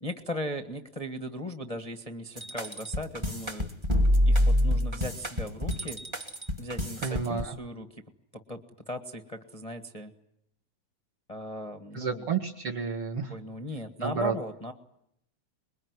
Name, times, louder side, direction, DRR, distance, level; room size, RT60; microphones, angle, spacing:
voice 1, 0.0-3.7 4.2-6.0 6.6-8.0 8.5-8.6 8.9-10.1 11.3-12.3 13.3-14.7, equal, 30° left, 6 dB, 0.6 m, -38 dB
sound 1, 2.4-7.5, equal, 15° right, 0.9 m, -26 dB
voice 2, 7.0-7.6 11.9-13.3 14.0-14.3, right 6 dB, 50° right, 0 dB, 2.5 m, -30 dB
26.5 x 22.0 x 9.6 m, 0.77 s
omnidirectional pair, 3.4 m